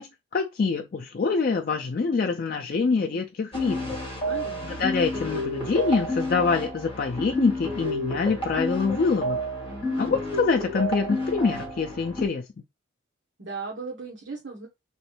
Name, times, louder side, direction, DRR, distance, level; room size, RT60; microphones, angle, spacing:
voice 1, 0.0-3.9 4.8-9.4 10.0-12.4, left 4 dB, 45° left, 0.4 m, -25 dB
sound 1, 3.5-12.3, left 1 dB, 25° left, 1.6 m, -30 dB
voice 2, 4.2-4.8 9.6-10.1 13.4-14.7, right 4 dB, 60° right, 1.0 m, -37 dB
3.1 x 3.0 x 3.1 m
head